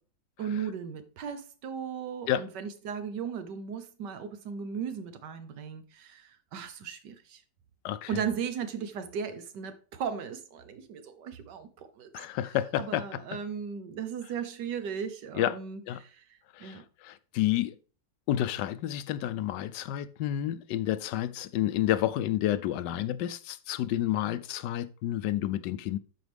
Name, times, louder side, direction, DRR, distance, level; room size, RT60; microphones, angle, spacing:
voice 1, 0.4-7.4 8.1-12.1 12.5-16.2 16.6-16.8, right 7 dB, 90° right, 1.6 m, -37 dB
voice 2, 12.1-13.0 15.4-15.5 15.9-16.0 16.6-16.7 17.3-17.7 18.3-26.0, left 12 dB, 90° left, 1.2 m, -29 dB
12.0 x 4.7 x 3.4 m
omnidirectional pair, 1.8 m